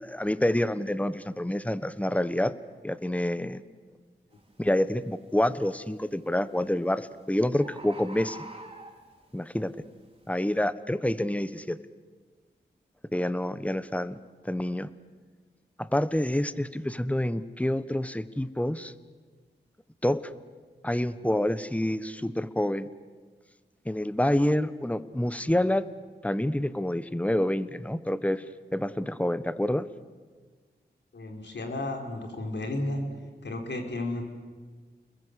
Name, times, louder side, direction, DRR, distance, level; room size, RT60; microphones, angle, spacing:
voice 1, 0.0-2.5 2.8-3.6 4.6-8.4 9.3-9.7 10.3-11.8 13.1-14.2 14.4-14.9 15.8-18.9 20.0-20.3 20.8-22.9 23.8-25.8 26.2-28.4 28.7-29.9, left 1 dB, 5° left, 14 dB, 1.2 m, -27 dB
Bird, 4.3-4.6 5.1-5.6 6.6-6.7 7.0-7.1 7.3-7.4 7.6-9.3 9.9-10.0, right 2 dB, 30° right, 4.8 m, -44 dB
voice 2, 31.1-33.0 33.4-34.2, left 2 dB, 80° left, 3 dB, 4.5 m, -33 dB
30.0 x 21.5 x 8.3 m, 1.5 s
cardioid pair, 50°, 18 cm